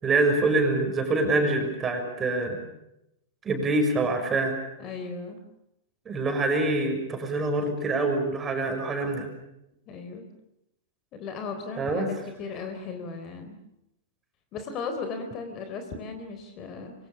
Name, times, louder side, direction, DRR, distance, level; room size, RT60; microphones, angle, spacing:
voice 1, 0.0-2.6 3.4-4.6 6.0-9.3 11.8-12.1, right 2 dB, 15° right, 4 dB, 6.5 m, -25 dB
voice 2, 4.8-5.4 9.9-10.3 11.1-13.6 14.5-16.9, left 4 dB, 30° left, 7 dB, 3.9 m, -36 dB
26.5 x 24.5 x 7.2 m, 0.84 s
supercardioid pair, 155°, 0 cm